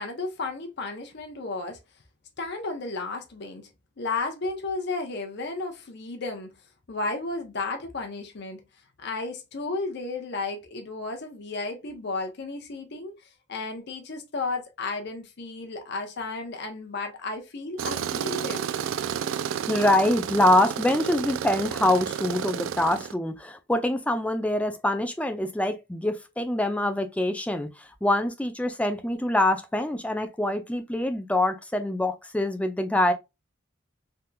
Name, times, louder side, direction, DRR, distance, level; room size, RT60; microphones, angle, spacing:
voice 1, 0.0-1.8 2.4-3.7 4.0-6.5 6.9-8.6 9.0-13.2 13.5-18.6, left 3 dB, 60° left, 0.7 m, -33 dB
Tools, 17.8-23.1, right 8 dB, 80° right, 0.3 m, -31 dB
voice 2, 19.7-33.1, left 1 dB, 5° left, 0.5 m, -25 dB
3.5 x 2.8 x 2.2 m
head